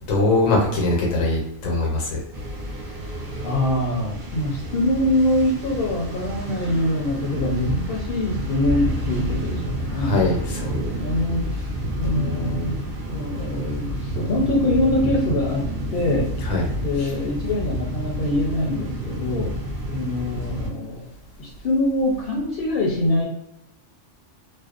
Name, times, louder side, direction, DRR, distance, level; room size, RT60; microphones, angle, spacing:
voice 1, 0.1-2.2 9.9-10.8 16.5-16.6 17.0-17.1, left 2 dB, 90° left, -1 dB, 1.1 m, -22 dB
sound 1, 2.3-20.7, equal, 55° right, 0.7 m, -29 dB
voice 2, 3.4-10.3 11.0-11.4 12.0-12.7 13.1-15.6 15.9-16.5 16.8-19.5 19.9-21.1 21.4-23.2, left 1 dB, 60° left, -3 dB, 0.6 m, -24 dB
2.5 x 2.0 x 2.3 m, 0.81 s
omnidirectional pair, 1.3 m